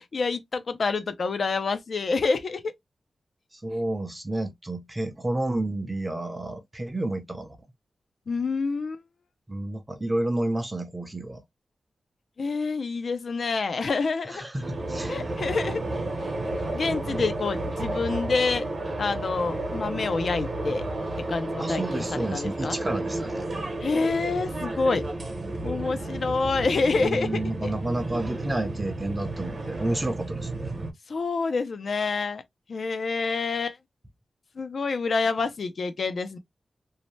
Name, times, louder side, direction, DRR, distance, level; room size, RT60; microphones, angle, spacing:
voice 1, 0.0-2.7 8.3-9.0 12.4-14.4 15.1-15.8 16.2-16.3 16.7-18.7 19.0-20.8 21.3-22.8 23.8-25.0 25.6-27.4 31.1-32.4 32.7-33.8 34.6-36.4, left 4 dB, 60° left, 0.4 m, -27 dB
voice 2, 3.5-7.6 9.5-11.4 14.3-15.3 21.6-23.5 27.0-30.7, right 1 dB, 20° right, 0.6 m, -30 dB
sound 1, 14.6-30.9, right 2 dB, 50° right, 0.9 m, -32 dB
2.7 x 2.1 x 3.0 m
wide cardioid pair, 110°, 0 cm